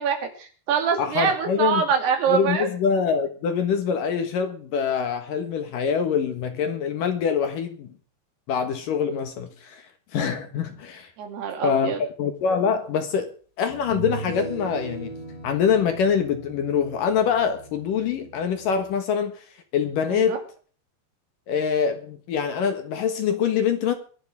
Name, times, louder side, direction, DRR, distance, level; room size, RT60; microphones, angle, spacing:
voice 1, 0.0-2.7 11.2-12.0 20.1-20.4, right 7 dB, 70° right, 4.6 m, -24 dB
voice 2, 1.0-1.8 2.3-7.9 8.5-9.8 10.1-11.1 11.6-13.3 13.6-15.1 15.4-19.4 19.7-20.4 21.5-23.9, left 7 dB, 60° left, 2.7 m, -24 dB
sound 1, 12.6-12.7 13.7-19.0, right 1 dB, 85° left, 7.1 m, -37 dB
23.5 x 11.0 x 3.6 m
omnidirectional pair, 5.0 m